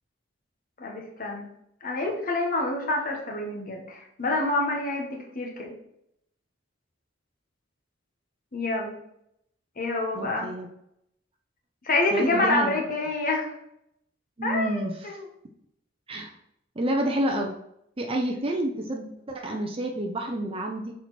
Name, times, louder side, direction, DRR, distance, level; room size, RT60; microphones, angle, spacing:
voice 1, 0.8-1.4 1.8-5.7 8.5-8.9 9.8-10.5 11.8-13.5 14.4-15.2, left 2 dB, 45° left, 0 dB, 1.3 m, -27 dB
voice 2, 10.1-10.7 12.1-12.8 14.4-15.1 16.1-16.3 16.8-17.5 18.0-20.9, right 1 dB, 30° right, 2 dB, 0.6 m, -29 dB
6.3 x 4.3 x 4.1 m, 0.76 s
head